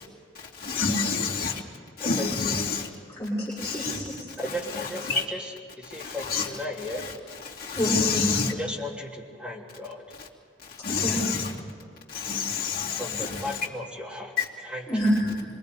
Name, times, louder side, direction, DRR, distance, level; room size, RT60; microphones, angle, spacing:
voice 1, 0.6-1.5 2.0-2.8 3.6-4.0 4.7-5.2 6.2-6.5 7.7-8.5 10.8-11.5 12.2-13.4 14.4-14.5, left 5 dB, 50° left, -5 dB, 2.9 m, -27 dB
voice 2, 2.0-2.6 4.4-5.5 5.8-7.0 8.6-10.0 13.0-14.9, left 1 dB, 5° right, -4 dB, 3.1 m, -35 dB
voice 3, 3.2-4.1 7.7-8.4 11.0-11.2 14.9-15.4, equal, 15° left, -10 dB, 6.5 m, -27 dB
26.0 x 23.0 x 5.3 m, 2.3 s
head